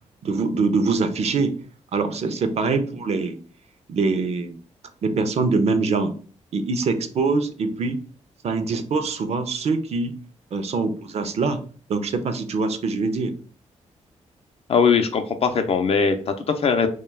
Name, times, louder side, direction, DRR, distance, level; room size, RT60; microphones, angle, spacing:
voice 1, 0.2-1.6 1.9-3.4 3.9-4.6 5.0-6.1 6.5-8.0 8.4-10.2 10.5-11.6 11.9-13.3, right 4 dB, 55° right, 9 dB, 0.4 m, -23 dB
voice 2, 14.7-16.9, left 5 dB, 50° left, 7 dB, 0.4 m, -20 dB
2.2 x 2.1 x 3.2 m, 0.41 s
cardioid pair, 80°, 13 cm